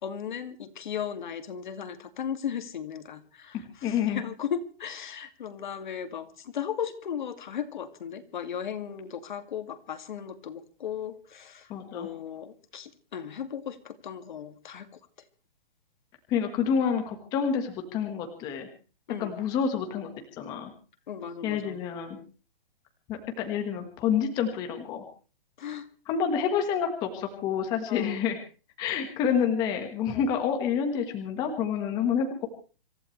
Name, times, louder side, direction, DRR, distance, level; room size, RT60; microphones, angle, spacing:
voice 1, 0.0-11.7 11.9-14.9 19.1-19.3 21.1-21.8 25.6-25.9 27.9-28.2 30.1-30.3, left 8 dB, 55° left, 9 dB, 2.4 m, -36 dB
voice 2, 3.8-4.2 11.7-12.1 16.3-18.7 19.2-20.1 20.4-20.7 21.4-22.2 23.1-25.0 26.1-28.4 28.8-32.5, left 7 dB, 15° left, 5 dB, 1.5 m, -28 dB
26.5 x 15.5 x 3.3 m, 0.37 s
hypercardioid pair, 180°, 29 cm